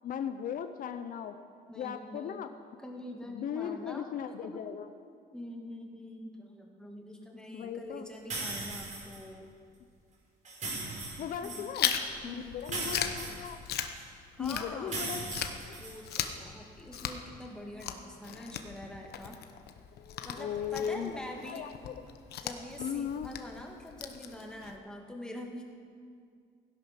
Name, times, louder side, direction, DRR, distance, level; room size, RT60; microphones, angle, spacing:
voice 1, 0.0-1.4 1.8-2.5 3.3-4.9 7.5-8.1 11.2-11.9 12.2-13.6 14.4-15.8 20.0-21.2 21.4-22.0 22.8-23.3, left 8 dB, 55° left, 10 dB, 0.7 m, -37 dB
voice 2, 1.7-2.5 2.8-4.1 4.4-4.6 5.3-9.5 11.4-11.7 12.2-12.6 14.4-15.0 15.8-19.4 20.2-21.7 22.4-25.6, left 1 dB, 5° left, 0 dB, 2.0 m, -44 dB
sound 1, 8.3-9.2 10.5-11.7 12.7-14.0 14.9-16.2, right 2 dB, 45° right, 4.7 m, -38 dB
Chewing mastication, 11.7-15.0 15.3-24.8, left 9 dB, 70° left, 1.0 m, -38 dB
16.0 x 11.0 x 5.9 m, 2.3 s
cardioid pair, 110°, 17 cm